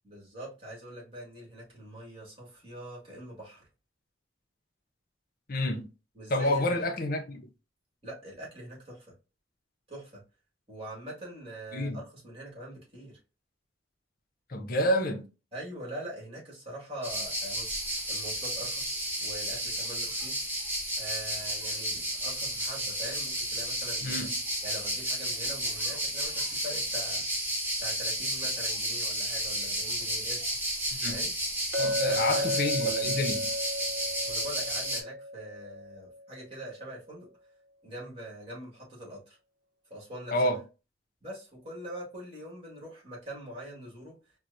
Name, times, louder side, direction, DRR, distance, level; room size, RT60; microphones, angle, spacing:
voice 1, 0.0-3.7 6.1-6.8 8.0-9.2 9.9-10.2 10.7-13.2 15.5-18.9 19.2-20.5 21.0-24.2 24.6-27.3 27.8-30.4 31.0-31.3 32.1-32.5 34.2-37.3 37.8-39.4 39.9-40.4 41.2-44.2, right 1 dB, 30° right, 1.8 m, -43 dB
voice 2, 5.5-5.9 6.3-7.5 11.7-12.0 14.5-15.3 24.0-24.4 31.0-31.3 31.8-33.5 40.3-40.6, left 1 dB, 50° left, 0.6 m, -29 dB
sound 1, 17.0-35.0, right 1 dB, 10° right, 0.8 m, -32 dB
Chink clink, 31.7-36.2, left 1 dB, 60° right, 0.7 m, -33 dB
4.3 x 2.2 x 2.5 m
head